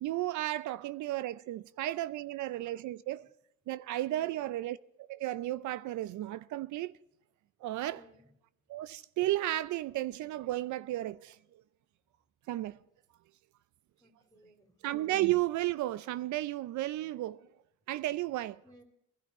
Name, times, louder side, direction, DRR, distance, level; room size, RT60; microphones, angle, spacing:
voice 1, 0.0-3.3 3.7-4.8 5.1-6.9 7.6-8.0 8.7-11.4 12.5-12.8 14.8-17.5 17.9-18.6, right 15 dB, 75° right, 0.4 m, -33 dB
voice 2, 4.1-4.5 7.9-8.3 14.0-14.8 18.6-18.8, equal, 15° left, 3.0 m, -59 dB
20.5 x 12.0 x 4.1 m
cardioid pair, 90°, 30 cm